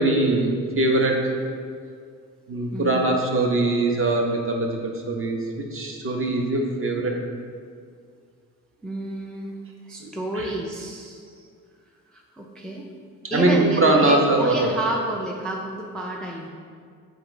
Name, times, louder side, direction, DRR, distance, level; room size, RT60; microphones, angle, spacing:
voice 1, 0.0-1.3 2.5-5.5 5.7-7.1 10.0-10.1 10.4-10.5 13.3-14.8, right 2 dB, 35° right, 2 dB, 0.6 m, -22 dB
voice 2, 2.7-3.1 8.8-9.5 9.9-11.2 12.1-12.9 13.3-16.5, right 1 dB, ahead, -1 dB, 0.4 m, -30 dB
3.7 x 2.6 x 3.7 m, 2.1 s
supercardioid pair, 50°, 37 cm